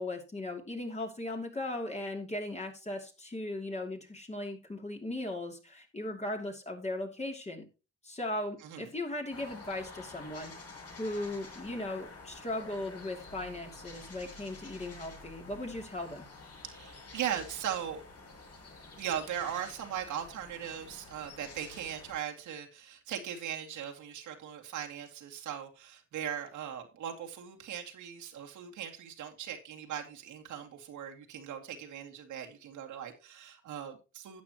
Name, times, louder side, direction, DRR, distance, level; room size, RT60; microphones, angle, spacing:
voice 1, 0.0-7.7 8.0-10.5 11.0-16.3, left 1 dB, 20° left, 2 dB, 2.8 m, -38 dB
sound 1, 9.3-22.2, left 3 dB, 55° left, 6.2 m, -49 dB
voice 2, 16.6-18.0 19.0-34.4, right 9 dB, 80° right, 2 dB, 2.3 m, -39 dB
12.5 x 8.6 x 2.9 m, 0.31 s
cardioid pair, 90°, 30 cm